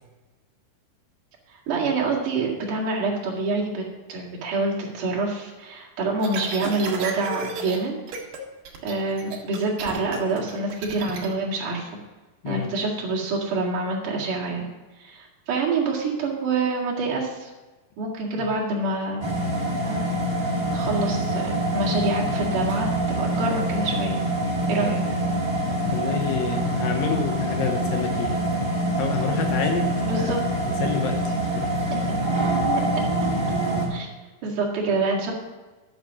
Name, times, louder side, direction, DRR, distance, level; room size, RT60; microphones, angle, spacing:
voice 1, 1.5-3.8 4.1-8.0 8.8-11.9 12.4-14.6 15.0-17.5 18.0-19.2 19.8-20.0 20.7-24.1 24.7-25.0 30.0-30.4 31.9-32.0 32.7-32.8 33.9-34.1 34.4-35.3, right 3 dB, 55° right, -4 dB, 3.3 m, -26 dB
sound 1, 6.2-7.8 8.1-8.4 8.7-11.3, right 4 dB, 75° right, 3.8 m, -33 dB
voice 2, 12.4-12.8 18.4-18.6 25.9-28.6 28.9-30.4 30.8-31.9, left 6 dB, 75° left, 5 dB, 2.3 m, -29 dB
sound 2, 19.2-33.9, right 1 dB, 15° right, 1.0 m, -25 dB
11.5 x 6.8 x 6.0 m, 1.2 s
omnidirectional pair, 4.5 m